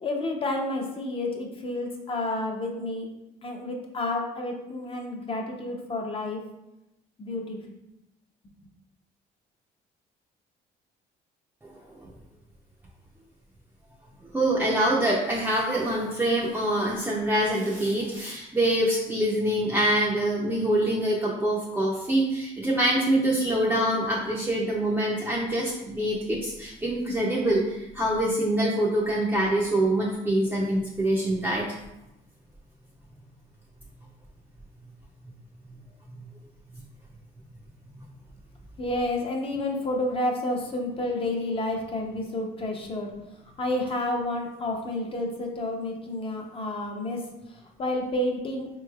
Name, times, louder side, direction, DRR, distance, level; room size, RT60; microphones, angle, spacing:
voice 1, 0.0-3.1 3.4-6.4 7.2-7.6 38.8-43.1 43.6-47.2 47.5-48.7, left 1 dB, 35° left, 1 dB, 0.7 m, -30 dB
voice 2, 14.3-31.6 37.9-38.1, right 1 dB, 10° right, -5 dB, 0.5 m, -25 dB
4.2 x 3.1 x 2.3 m, 0.91 s
cardioid pair, 110°, 17 cm